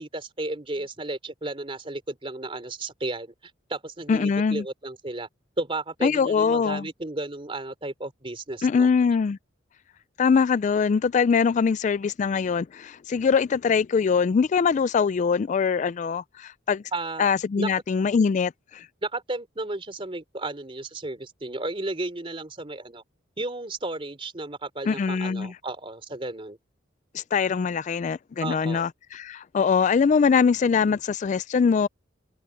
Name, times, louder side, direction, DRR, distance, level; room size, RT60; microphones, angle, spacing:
voice 1, 0.0-5.3 5.6-8.9 16.9-17.3 17.5-17.7 19.0-23.0 23.4-26.6 28.4-28.9, right 2 dB, 30° right, 3.2 m, -33 dB
voice 2, 4.1-4.6 6.0-6.9 8.6-9.4 10.2-16.8 17.2-18.9 24.9-25.5 27.1-31.9, left 5 dB, 40° left, 0.3 m, -23 dB
open air
head